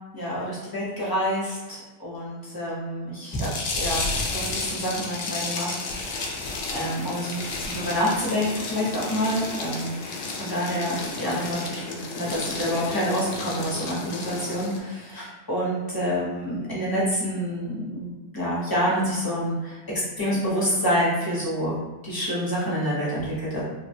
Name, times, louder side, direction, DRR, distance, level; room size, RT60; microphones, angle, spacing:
voice 1, 0.1-3.5 3.8-6.4 6.7-9.9 10.4-19.8 20.2-21.8 22.0-23.6, equal, 25° left, -7 dB, 0.8 m, -27 dB
sound 1, 3.3-14.8, left 3 dB, 75° left, 0.8 m, -32 dB
3.3 x 2.2 x 2.6 m, 1.1 s
omnidirectional pair, 1.1 m